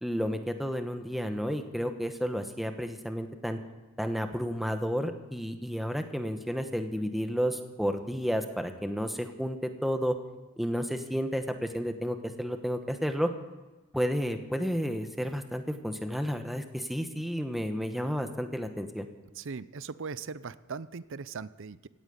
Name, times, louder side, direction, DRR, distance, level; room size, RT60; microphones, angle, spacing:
voice 1, 0.0-3.6 4.0-10.1 10.6-13.3 13.9-19.1, equal, ahead, 6 dB, 1.1 m, -31 dB
voice 2, 19.3-21.9, right 5 dB, 60° right, 16 dB, 0.6 m, -39 dB
17.0 x 9.1 x 8.3 m, 1.2 s
head